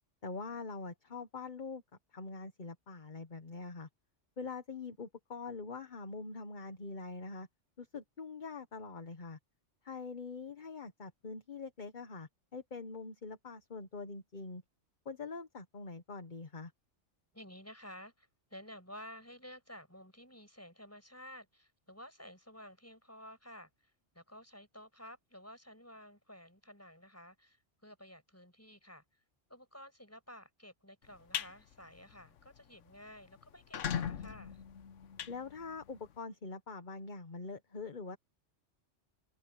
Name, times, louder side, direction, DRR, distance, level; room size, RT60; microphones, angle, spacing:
voice 1, 0.2-1.8 2.1-3.9 4.4-7.5 7.8-9.4 9.8-14.6 15.0-16.7 35.3-38.2, left 4 dB, 40° left, 1.4 m, -44 dB
voice 2, 17.3-29.2 29.5-34.6, equal, 10° left, 6.8 m, -53 dB
sound 1, 31.0-31.5 32.0-32.2 32.6-32.7 32.9-33.0 33.5-36.1, left 8 dB, 85° left, 1.2 m, -39 dB
omnidirectional pair, 1.2 m